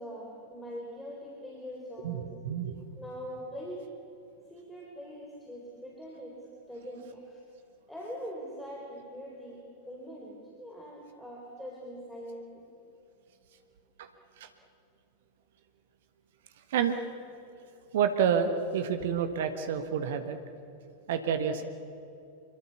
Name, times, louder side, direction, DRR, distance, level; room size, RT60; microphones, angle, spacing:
voice 1, 0.0-2.3 3.0-3.9 4.5-7.4 7.9-12.6, equal, 5° left, -2 dB, 4.0 m, -43 dB
voice 2, 2.0-2.9 14.0-14.1 14.4-14.5 16.7-17.0 17.9-20.4 21.1-21.6, right 7 dB, 55° right, 8 dB, 1.6 m, -29 dB
26.0 x 23.0 x 7.1 m, 2.7 s
figure-of-eight pair, 90°, 0 cm